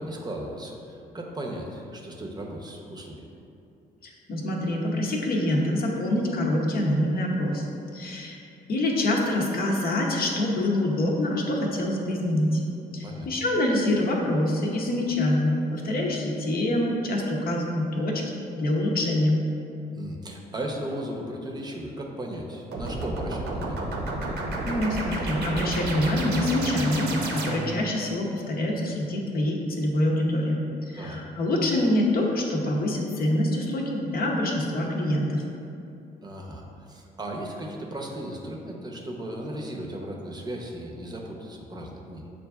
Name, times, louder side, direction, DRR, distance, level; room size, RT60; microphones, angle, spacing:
voice 1, 0.0-3.3 13.0-13.3 19.9-23.8 30.9-31.2 36.2-42.3, right 1 dB, 25° right, -1 dB, 0.7 m, -36 dB
voice 2, 4.0-7.7 7.9-8.4 8.7-12.6 12.9-19.4 24.7-35.4, left 1 dB, 55° left, -1 dB, 0.7 m, -25 dB
sound 1, 22.7-27.9, right 2 dB, 70° right, 0.7 m, -31 dB
6.6 x 2.5 x 2.3 m, 2.7 s
supercardioid pair, 70°, 18 cm